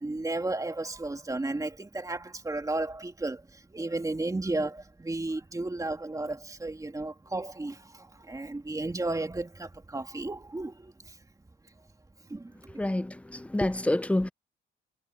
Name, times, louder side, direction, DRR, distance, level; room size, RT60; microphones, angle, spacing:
voice 1, 0.0-11.2 12.3-12.8, right 2 dB, 15° right, 3.1 m, -34 dB
voice 2, 12.7-14.3, left 1 dB, 5° left, 0.8 m, -28 dB
cardioid pair, 90°, 20 cm